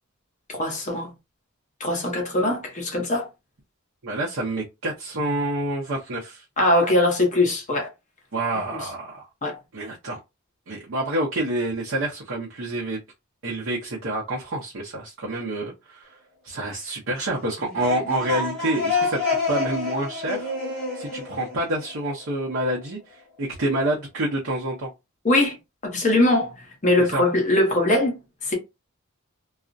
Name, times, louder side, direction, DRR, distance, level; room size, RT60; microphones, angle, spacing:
voice 1, 0.5-1.1 1.8-3.3 6.6-7.9 8.7-8.8 9.4-9.6 25.2-25.6 25.8-28.6, left 1 dB, 35° left, 0.8 m, -21 dB
voice 2, 4.0-6.4 8.3-9.2 9.7-10.2 10.7-13.0 13.4-16.1 16.4-19.2 19.5-20.5 20.9-24.9 27.0-27.2, right 1 dB, 65° right, 0.7 m, -28 dB
sound 1, 17.6-22.3, left 4 dB, 5° left, 0.9 m, -28 dB
2.4 x 2.0 x 2.5 m
head